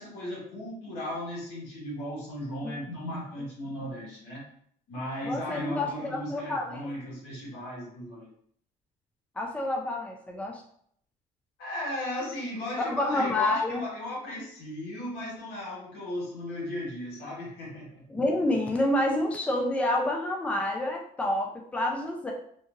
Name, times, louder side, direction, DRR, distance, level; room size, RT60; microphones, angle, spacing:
voice 1, 0.0-4.4 4.9-8.3 11.6-18.0, left 1 dB, 85° left, -5 dB, 1.5 m, -36 dB
voice 2, 5.2-6.9 9.4-10.6 12.8-13.8 18.1-22.3, left 1 dB, 10° left, 0 dB, 0.4 m, -28 dB
2.9 x 2.4 x 2.5 m, 0.65 s
cardioid pair, 110°, 17 cm